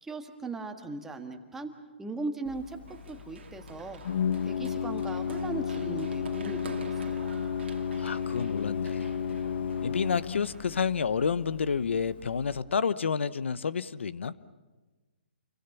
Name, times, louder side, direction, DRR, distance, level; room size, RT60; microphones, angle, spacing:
voice 1, 0.0-1.7 2.0-2.8 3.1-4.0 4.4-7.3, right 3 dB, 5° right, 5 dB, 1.6 m, -38 dB
Organ, 2.5-12.6, left 7 dB, 60° left, 1.4 m, -33 dB
Run, 2.9-10.6, right 6 dB, 65° right, 2.1 m, -48 dB
voice 2, 8.0-9.1 9.8-14.3, left 6 dB, 75° left, 17 dB, 1.0 m, -29 dB
29.0 x 23.0 x 7.1 m, 1.2 s
hypercardioid pair, 155°, 6 cm